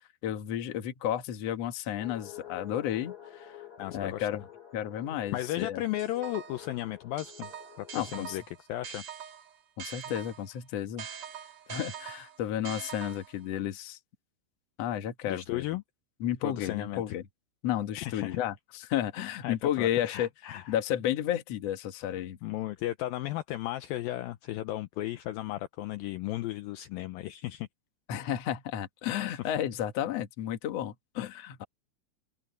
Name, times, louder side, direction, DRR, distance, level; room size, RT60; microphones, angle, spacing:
voice 1, 0.2-3.6 3.9-4.4 4.7-5.8 7.9-8.4 9.8-11.1 11.7-14.0 14.8-15.7 16.2-17.2 17.6-20.3 20.7-22.4 28.1-31.6, left 11 dB, 60° left, 1.8 m, -32 dB
sound 1, 2.0-8.4, left 11 dB, 30° left, 2.1 m, -49 dB
voice 2, 3.8-4.3 5.3-7.5 7.8-8.4 8.7-9.0 15.3-15.8 16.4-17.1 18.0-18.4 19.4-20.8 22.4-27.7 29.3-29.4, left 15 dB, 85° left, 2.1 m, -35 dB
sound 2, 6.0-6.7 7.2-10.5 11.0-13.4, right 8 dB, 50° right, 3.9 m, -43 dB
open air
omnidirectional pair, 4.9 m